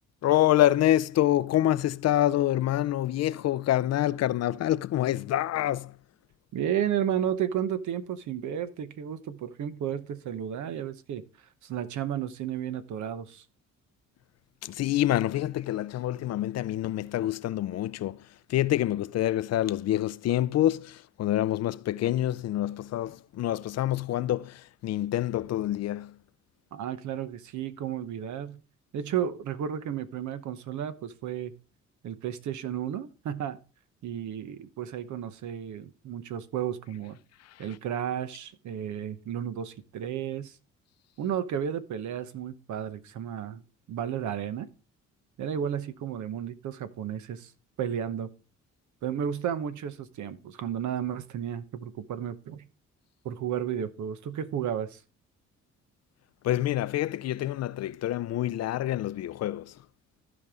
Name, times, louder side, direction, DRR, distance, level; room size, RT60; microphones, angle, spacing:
voice 1, 0.2-5.9 14.6-26.2 37.6-37.7 56.4-59.7, left 13 dB, 60° left, 0.5 m, -27 dB
voice 2, 6.5-11.2 11.6-13.4 26.7-28.6 28.9-31.5 32.0-33.6 34.0-37.2 37.6-40.5 41.2-43.6 43.9-44.7 45.4-47.5 47.8-48.3 49.0-52.7 53.2-55.0, right 9 dB, 75° right, 1.0 m, -33 dB
14.5 x 5.4 x 3.6 m
cardioid pair, 90°, 30 cm